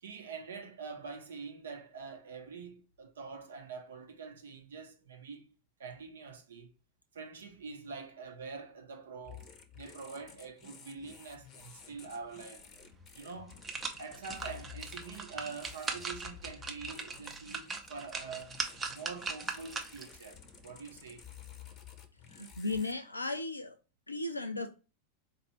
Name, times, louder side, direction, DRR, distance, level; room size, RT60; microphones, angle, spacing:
voice 1, 0.0-5.5 5.8-6.7 7.1-12.7 13.1-13.6 14.0-21.3, right 5 dB, 65° right, 0.8 m, -45 dB
sound 1, 9.2-22.9, left 8 dB, 35° left, 0.7 m, -53 dB
sound 2, 12.7-12.8 13.3-20.2 20.6-20.7, right 4 dB, 20° right, 0.6 m, -40 dB
voice 2, 22.4-23.7 24.1-24.7, left 2 dB, 80° left, 0.3 m, -35 dB
4.4 x 2.5 x 3.1 m
figure-of-eight pair, 90°, 0 cm